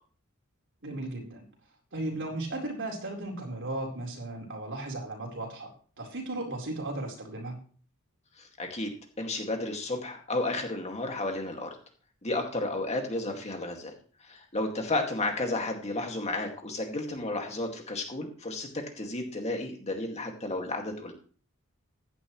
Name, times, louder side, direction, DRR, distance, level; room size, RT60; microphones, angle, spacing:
voice 1, 0.8-1.4 1.9-5.7 6.0-7.6, right 2 dB, 60° right, 1 dB, 4.2 m, -35 dB
voice 2, 8.4-11.7 12.2-13.9 14.3-18.7 19.0-21.1, left 2 dB, 30° left, 3 dB, 2.2 m, -32 dB
15.5 x 11.0 x 3.2 m, 0.43 s
head